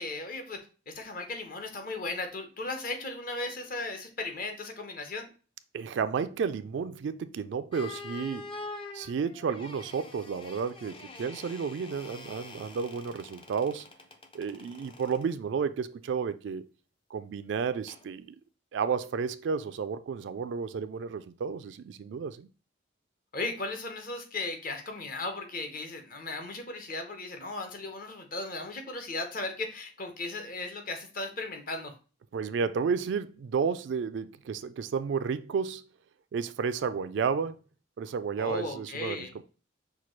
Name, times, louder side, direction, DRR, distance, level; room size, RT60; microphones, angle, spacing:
voice 1, 0.0-5.3 23.3-31.9 38.4-39.3, left 2 dB, 45° left, 0.8 m, -36 dB
voice 2, 5.7-8.5 8.9-13.9 14.3-16.7 17.1-18.4 18.7-22.5 32.3-35.8 36.3-37.6 38.0-39.4, right 6 dB, 65° right, 0.3 m, -32 dB
sound 1, 7.7-15.3 17.9-18.1, left 3 dB, 25° left, 0.4 m, -45 dB
5.8 x 2.3 x 3.1 m
head